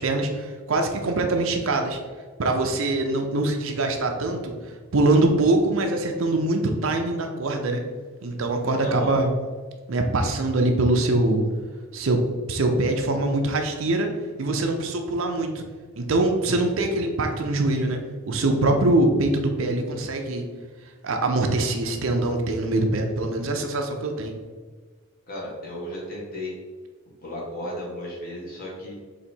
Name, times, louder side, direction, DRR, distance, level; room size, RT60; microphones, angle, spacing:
voice 1, 0.0-2.0 2.4-4.6 4.9-7.9 8.2-9.3 9.9-11.4 11.9-12.2 12.5-14.1 14.4-15.6 16.0-18.0 18.3-20.5 21.0-24.4, right 2 dB, 65° right, 4 dB, 0.5 m, -23 dB
voice 2, 8.8-9.2 25.3-26.5 27.2-28.9, left 1 dB, 40° left, -5 dB, 1.3 m, -34 dB
4.0 x 2.7 x 4.3 m, 1.5 s
head